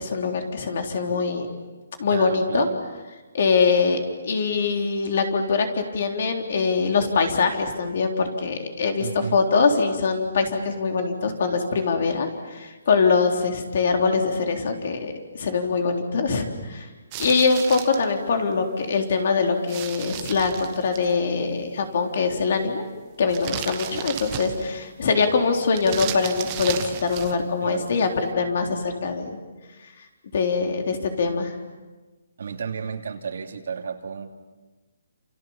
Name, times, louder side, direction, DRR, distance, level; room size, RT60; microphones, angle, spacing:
voice 1, 0.0-1.5 2.0-2.7 3.3-4.0 4.2-16.9 17.2-22.8 23.2-29.4 30.3-31.5, left 4 dB, 45° left, 5 dB, 3.6 m, -23 dB
voice 2, 2.1-2.8 9.0-9.4 23.9-24.1 27.6-28.1 32.4-34.3, right 6 dB, 55° right, 5 dB, 2.8 m, -32 dB
sound 1, 17.1-18.0 19.7-21.1 23.3-24.8 25.7-27.4, right 11 dB, 20° right, 1.4 m, -34 dB
29.0 x 28.5 x 7.3 m, 1.2 s
hypercardioid pair, 175°, 0 cm